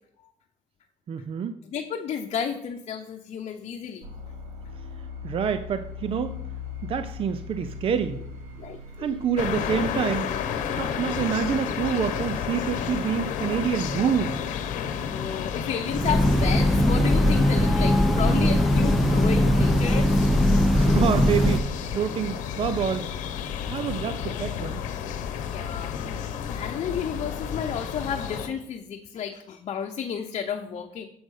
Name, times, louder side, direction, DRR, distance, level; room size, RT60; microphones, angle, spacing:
voice 1, 1.1-1.6 5.2-6.4 6.8-8.2 9.0-10.3 10.8-14.4 20.7-23.1 23.6-24.8, right 7 dB, 45° right, 10 dB, 0.6 m, -27 dB
voice 2, 1.6-4.1 8.6-9.2 9.5-9.8 15.0-20.2 20.6-20.7 25.5-31.1, left 7 dB, 55° left, 2 dB, 0.8 m, -32 dB
sound 1, 4.0-9.4, left 5 dB, 90° right, 1.4 m, -39 dB
sound 2, 9.4-28.5, left 8 dB, 90° left, 0.9 m, -31 dB
Train, 15.9-21.6, left 1 dB, ahead, 0.8 m, -20 dB
7.9 x 5.2 x 6.4 m, 0.73 s
cardioid pair, 105°, 13 cm